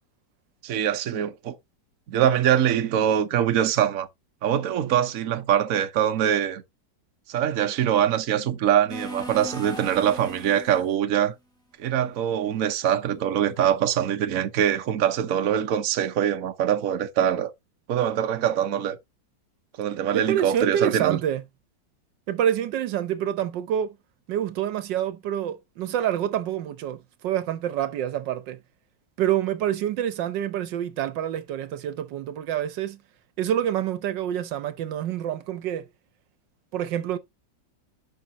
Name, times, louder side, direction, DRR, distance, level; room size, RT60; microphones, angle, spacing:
voice 1, 0.6-1.6 2.1-4.1 4.4-6.6 7.3-11.3 11.8-17.5 17.9-19.0 19.8-21.2, right 10 dB, 55° right, 1.1 m, -23 dB
sound 1, 8.9-11.0, right 1 dB, ahead, 2.4 m, -38 dB
voice 2, 20.1-21.4 22.3-24.0 24.3-28.6 29.2-33.0 33.4-35.9 36.7-37.2, right 10 dB, 80° right, 1.5 m, -27 dB
10.5 x 5.7 x 2.8 m
omnidirectional pair, 1.9 m